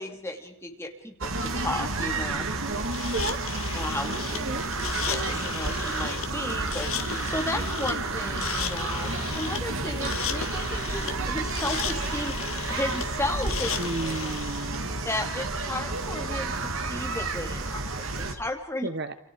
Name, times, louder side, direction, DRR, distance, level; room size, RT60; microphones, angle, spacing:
voice 1, 0.0-2.5 3.7-4.2 5.1-12.3 12.7-13.8 15.0-18.9, left 1 dB, 10° left, 3 dB, 2.6 m, -34 dB
sound 1, 1.2-18.3, right 3 dB, 65° right, 2.2 m, -31 dB
sound 2, 2.9-14.8, left 8 dB, 70° left, 1.7 m, -35 dB
voice 2, 4.1-4.6 13.8-14.9 18.8-19.1, right 2 dB, 50° right, 12 dB, 1.1 m, -32 dB
28.5 x 27.5 x 4.7 m, 0.68 s
head